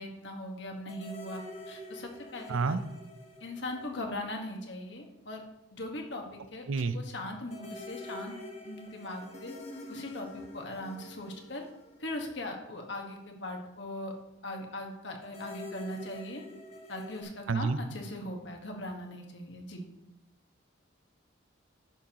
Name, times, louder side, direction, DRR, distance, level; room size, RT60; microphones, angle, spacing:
voice 1, 0.0-2.8 3.4-5.4 5.7-8.4 8.6-9.5 9.9-11.7 12.0-14.2 14.4-16.4 16.9-19.8, left 1 dB, 60° left, 2 dB, 1.5 m, -40 dB
sound 1, 0.9-4.6 4.9-5.0 7.5-12.9 15.2-17.2, left 1 dB, 35° left, 1.1 m, -46 dB
voice 2, 2.5-2.8 6.7-7.0 17.5-17.8, right 4 dB, 85° right, 12 dB, 0.6 m, -28 dB
11.0 x 7.1 x 3.0 m, 0.92 s
head